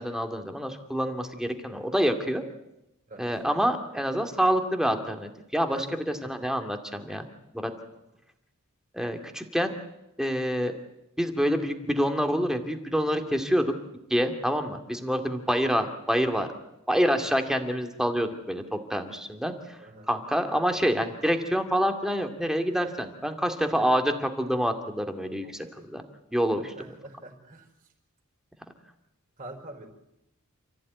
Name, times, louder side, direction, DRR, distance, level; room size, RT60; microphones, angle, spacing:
voice 1, 0.0-2.4 3.2-7.3 7.5-7.7 8.9-9.7 10.2-10.7 11.2-13.7 14.1-16.5 16.9-19.8 20.1-26.0 26.3-26.7, equal, ahead, 6 dB, 2.2 m, -27 dB
voice 2, 5.7-6.0 19.8-20.1 25.4-25.5 26.7-27.6 29.4-29.9, right 2 dB, 35° right, 3 dB, 5.0 m, -43 dB
29.0 x 15.0 x 9.4 m, 0.89 s
head